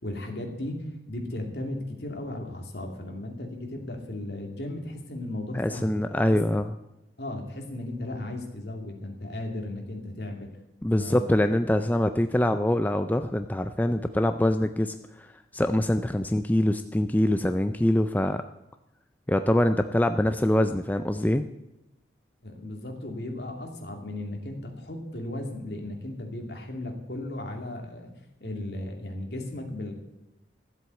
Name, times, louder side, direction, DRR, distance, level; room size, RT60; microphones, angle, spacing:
voice 1, 0.0-5.9 6.3-6.4 7.2-10.5 11.0-11.6 22.4-28.1 28.4-29.9, left 1 dB, 65° left, 2 dB, 2.6 m, -36 dB
voice 2, 5.5-6.7 10.8-18.4 19.3-21.5, left 1 dB, 10° left, 8 dB, 0.4 m, -24 dB
13.5 x 7.9 x 8.2 m, 0.92 s
head